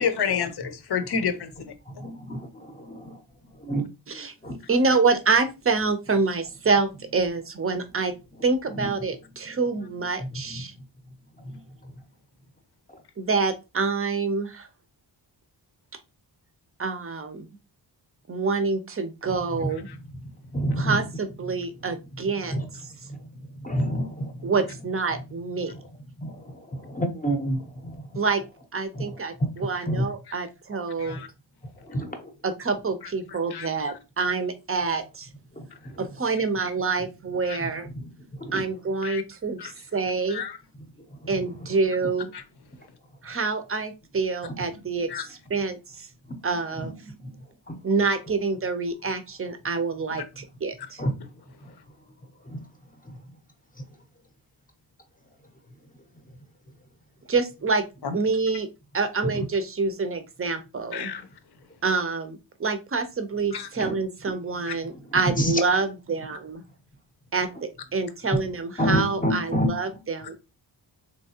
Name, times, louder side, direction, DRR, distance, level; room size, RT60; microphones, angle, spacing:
voice 1, 0.0-1.7 19.9-20.0 31.0-31.3 33.0-33.7 35.7-35.8 37.4-37.6 39.0-39.2 39.6-39.7 40.3-40.6 42.3-42.4 45.1-45.2 50.2-50.3 58.0-58.2 60.9-61.3 63.5-63.7 64.7-64.8, left 7 dB, 55° left, 0.7 m, -30 dB
voice 2, 1.9-3.2 3.5-4.6 8.7-8.9 9.4-9.5 10.2-10.6 11.4-11.9 19.5-21.0 21.5-21.6 22.5-22.7 23.0-24.5 25.7-25.8 26.2-28.2 28.9-29.5 29.8-30.1 31.1-31.2 31.8-32.3 35.5-36.1 37.0-37.1 37.6-38.1 38.4-38.6 41.1-41.7 44.4-44.6 46.3-46.4 46.7-47.4 47.7-47.8 51.0-51.7 52.4-52.7 53.0-53.4 59.2-59.4 63.8-64.0 64.5-64.6 65.1-65.6 68.8-70.0, equal, 20° left, 0.7 m, -30 dB
voice 3, 4.7-8.1 8.4-10.7 13.2-14.7 16.8-17.5 18.3-19.9 20.8-22.6 24.4-25.7 28.1-28.4 28.7-31.2 32.4-35.3 36.0-37.9 38.5-40.4 41.3-42.3 43.2-45.1 45.5-46.1 46.4-47.1 47.8-51.0 57.3-57.8 58.1-58.7 58.9-61.1 61.8-66.6 67.3-70.3, right 4 dB, 30° right, 0.6 m, -27 dB
3.5 x 2.8 x 2.8 m
wide cardioid pair, 85°, 46 cm